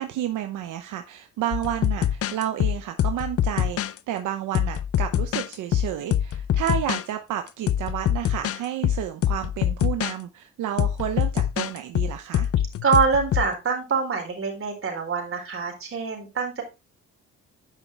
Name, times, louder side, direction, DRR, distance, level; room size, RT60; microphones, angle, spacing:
voice 1, 0.0-12.5, right 11 dB, 80° right, 7 dB, 0.8 m, -31 dB
sound 1, 1.5-4.0 4.5-7.0 7.5-10.1 10.8-13.5, left 10 dB, 50° left, 0.6 m, -24 dB
voice 2, 12.8-16.6, right 5 dB, 45° right, 2 dB, 4.0 m, -25 dB
10.5 x 5.3 x 3.3 m, 0.26 s
cardioid pair, 90°, 30 cm